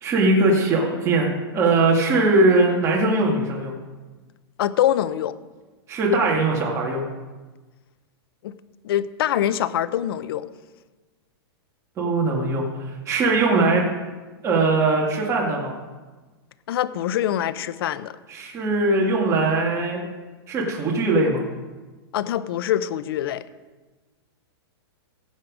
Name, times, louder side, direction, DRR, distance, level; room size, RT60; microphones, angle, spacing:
voice 1, 0.0-3.7 5.9-7.0 12.0-13.8 14.4-15.7 18.3-20.0 20.5-21.4, right 2 dB, 20° right, -2 dB, 2.1 m, -20 dB
voice 2, 4.6-5.4 8.4-8.6 8.8-10.5 16.7-18.2 22.1-23.4, left 11 dB, 65° left, 15 dB, 0.7 m, -24 dB
17.0 x 7.5 x 5.1 m, 1.3 s
hypercardioid pair, 150°, 13 cm